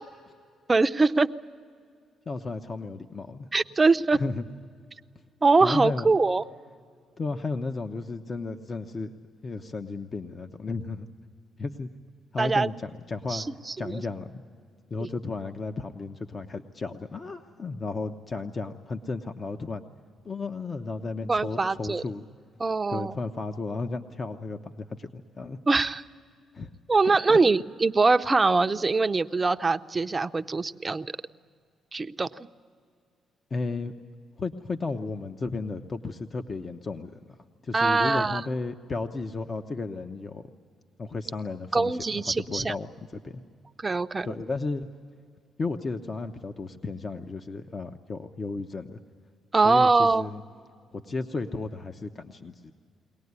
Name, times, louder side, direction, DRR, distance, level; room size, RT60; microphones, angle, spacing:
voice 1, 0.7-1.3 3.5-4.2 5.4-6.4 12.4-12.7 13.3-14.0 15.0-15.1 21.3-22.0 22.6-23.1 25.7-26.0 26.9-31.1 31.9-32.3 37.7-38.4 41.7-42.7 43.8-44.3 49.5-50.2, right 3 dB, 25° right, 9 dB, 0.6 m, -23 dB
voice 2, 2.3-3.5 4.1-4.4 5.6-6.1 7.2-9.1 9.4-11.1 11.6-11.9 12.3-13.4 13.8-14.4 14.9-19.8 20.2-22.2 22.9-25.6 26.5-26.7 27.0-27.4 33.5-33.9 34.4-37.1 37.6-40.4 41.0-43.4 44.2-44.9 45.6-49.0 49.6-50.4 50.9-52.7, left 3 dB, 35° left, 6 dB, 0.9 m, -34 dB
23.0 x 18.5 x 9.6 m, 2.3 s
cardioid pair, 90°, 0 cm